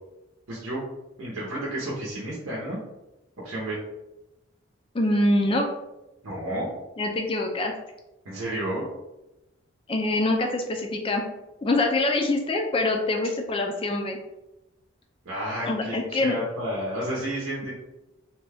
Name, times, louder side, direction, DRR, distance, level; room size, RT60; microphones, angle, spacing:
voice 1, 0.5-0.8 1.2-2.8 3.4-3.8 6.2-6.7 8.2-8.9 15.2-17.7, right 1 dB, 85° right, -5 dB, 0.8 m, -31 dB
voice 2, 4.9-5.7 7.0-7.7 9.9-11.2 11.6-14.2 15.7-16.4, left 2 dB, 25° left, 3 dB, 0.3 m, -24 dB
2.6 x 2.2 x 3.2 m, 0.97 s
head